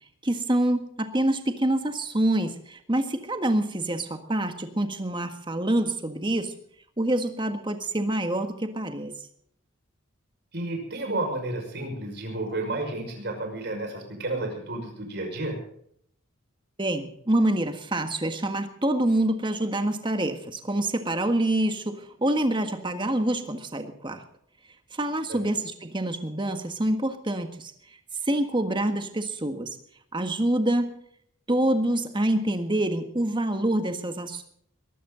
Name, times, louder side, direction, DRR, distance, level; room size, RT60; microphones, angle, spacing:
voice 1, 0.2-6.5 7.0-9.1 16.8-24.2 24.9-27.7 28.2-29.7 30.1-30.9 31.5-34.4, right 1 dB, 25° right, 7 dB, 1.6 m, -26 dB
voice 2, 10.5-15.6 25.3-25.5, right 2 dB, 55° right, 3 dB, 5.7 m, -31 dB
22.5 x 13.0 x 3.9 m, 0.66 s
head